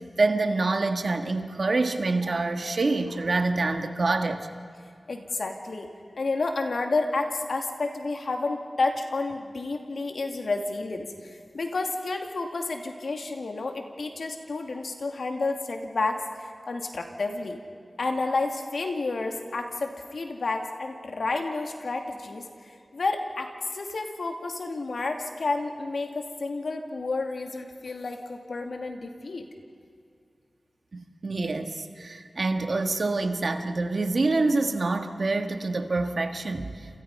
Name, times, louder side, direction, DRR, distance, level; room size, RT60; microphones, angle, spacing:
voice 1, 0.2-4.5 30.9-36.7, right 3 dB, 65° right, 6 dB, 1.6 m, -26 dB
voice 2, 5.1-5.9 6.1-17.6 18.0-29.5, left 3 dB, 85° left, 3 dB, 2.4 m, -30 dB
28.0 x 28.0 x 5.5 m, 2.3 s
wide cardioid pair, 80°, 0 cm